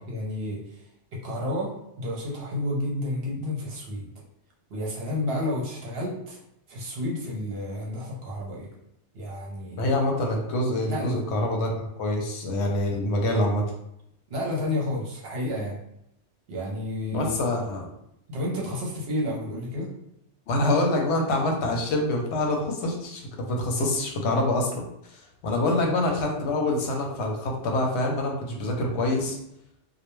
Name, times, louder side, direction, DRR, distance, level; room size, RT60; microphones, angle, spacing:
voice 1, 0.1-0.8 1.1-4.1 4.7-6.4 6.7-8.7 9.1-9.9 10.9-11.2 14.3-15.8 16.5-17.4 18.3-19.9 25.6-25.9, left 1 dB, 65° right, -2 dB, 0.8 m, -31 dB
voice 2, 9.8-11.7 12.0-13.6 17.1-17.9 20.5-29.4, left 1 dB, 75° left, 1 dB, 0.9 m, -26 dB
2.2 x 2.1 x 3.0 m, 0.80 s
omnidirectional pair, 1.2 m